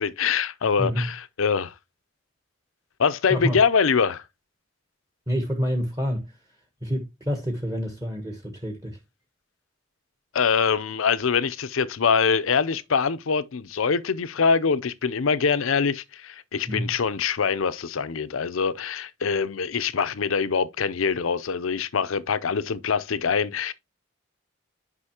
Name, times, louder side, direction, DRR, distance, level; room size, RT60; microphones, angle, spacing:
voice 1, 0.0-1.7 3.0-4.2 10.3-23.7, left 6 dB, 80° left, 0.6 m, -24 dB
voice 2, 0.8-1.1 3.3-3.6 5.3-6.4 6.8-9.0 16.7-16.9, equal, 15° right, 1.1 m, -28 dB
9.8 x 5.5 x 2.9 m
head